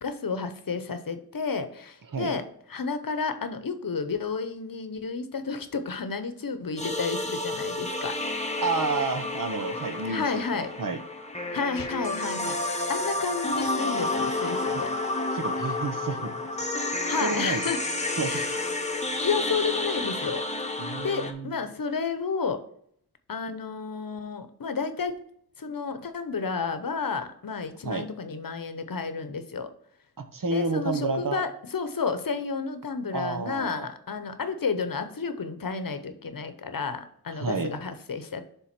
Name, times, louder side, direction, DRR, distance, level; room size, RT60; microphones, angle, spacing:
voice 1, 0.0-2.4 2.7-8.5 10.1-10.7 11.5-14.9 17.1-17.9 18.2-18.5 19.2-20.5 21.0-22.6 23.3-25.1 25.6-29.7 30.5-38.4, left 5 dB, 65° left, 10 dB, 0.8 m, -31 dB
sound 1, 6.8-21.3, left 2 dB, 20° left, 1.0 m, -30 dB
voice 2, 8.6-10.2 10.5-11.0 14.7-14.8 15.3-16.3 17.2-17.6 18.2-18.6 20.8-21.5 27.8-28.1 30.2-31.4 33.1-33.9 37.3-37.7, right 4 dB, 60° right, 8 dB, 0.9 m, -30 dB
7.2 x 3.6 x 5.9 m, 0.68 s
wide cardioid pair, 70°, 37 cm